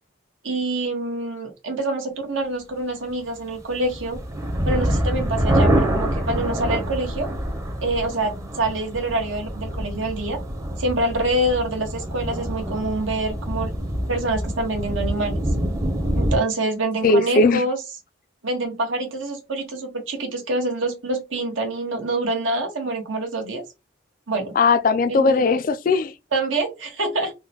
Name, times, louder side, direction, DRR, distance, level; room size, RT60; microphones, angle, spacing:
voice 1, 0.4-4.2 4.6-7.3 7.8-10.4 10.8-13.7 14.1-15.4 16.1-17.8 18.4-23.6 24.3-24.5 25.1-25.4 26.3-27.3, right 2 dB, 85° right, 1.1 m, -26 dB
sound 1, 3.6-16.4, equal, 15° right, 0.6 m, -26 dB
voice 2, 17.0-17.6 24.6-26.1, left 3 dB, 45° left, 0.3 m, -18 dB
3.6 x 2.1 x 2.8 m
head